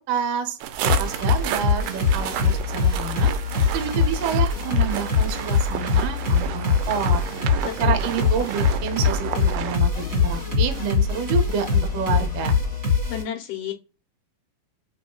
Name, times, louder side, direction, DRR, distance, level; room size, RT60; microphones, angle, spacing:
voice 1, 0.1-3.3 3.7-7.2 7.8-12.6, right 7 dB, 75° right, 5 dB, 1.5 m, -28 dB
sound 1, 0.6-9.8, right 10 dB, 90° right, 2.5 m, -32 dB
sound 2, 0.8-13.2, left 5 dB, 40° right, 1.2 m, -23 dB
sound 3, 4.7-12.8, left 10 dB, 90° left, 1.6 m, -41 dB
voice 2, 7.6-8.0 13.1-13.7, left 9 dB, 70° left, 1 dB, 1.5 m, -31 dB
5.9 x 3.1 x 2.3 m, 0.29 s
omnidirectional pair, 4.3 m